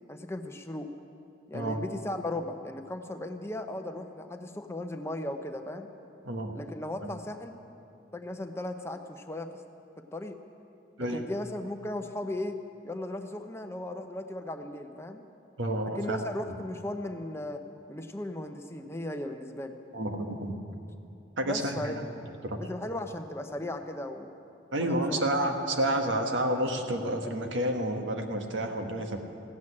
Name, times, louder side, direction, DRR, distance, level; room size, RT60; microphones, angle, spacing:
voice 1, 0.1-0.9 1.5-5.9 6.5-7.5 8.1-9.5 10.1-10.4 11.0-12.6 12.8-15.2 16.0-17.6 17.9-19.8 21.5-22.0 22.6-24.4 24.8-25.2, left 1 dB, 15° left, 6 dB, 0.7 m, -36 dB
voice 2, 6.2-6.6 7.0-7.1 11.0-11.2 15.6-16.2 19.9-20.6 21.4-21.9 22.4-22.6 24.7-29.2, right 1 dB, 85° right, 4 dB, 1.4 m, -30 dB
15.5 x 8.2 x 9.8 m, 2.7 s
head